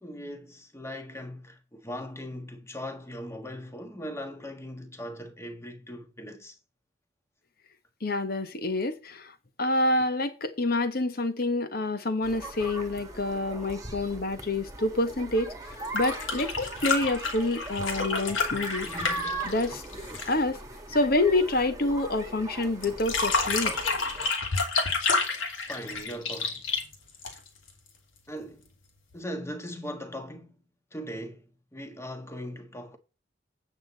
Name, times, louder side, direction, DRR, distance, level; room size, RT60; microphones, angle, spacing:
voice 1, 0.0-6.6 18.8-19.5 20.1-20.2 25.4-26.6 28.3-28.6 29.1-30.6 30.9-31.4 31.7-33.0, equal, 15° left, 1.4 m, -39 dB
voice 2, 8.0-9.3 9.6-15.5 15.9-18.9 19.4-19.8 20.3-20.6 20.9-23.7, left 2 dB, 50° left, 1.2 m, -27 dB
sound 1, 12.2-24.3, right 2 dB, 15° right, 1.6 m, -39 dB
sound 2, 15.7-20.4 22.8-27.7 29.1-29.2, left 4 dB, 80° left, 2.7 m, -29 dB
8.8 x 7.3 x 4.0 m
head